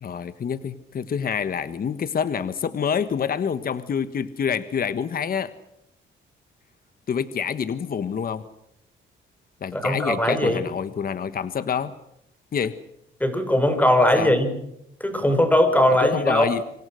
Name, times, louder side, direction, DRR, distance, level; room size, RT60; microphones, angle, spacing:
voice 1, 0.0-5.5 7.1-8.5 9.6-11.9 12.5-12.8 14.2-14.3 16.1-16.6, left 7 dB, 50° left, 12 dB, 1.4 m, -27 dB
voice 2, 9.7-10.6 13.2-14.5 15.0-16.5, left 1 dB, 10° left, 8 dB, 5.7 m, -19 dB
26.5 x 25.5 x 6.4 m, 0.81 s
cardioid pair, 90°, 20 cm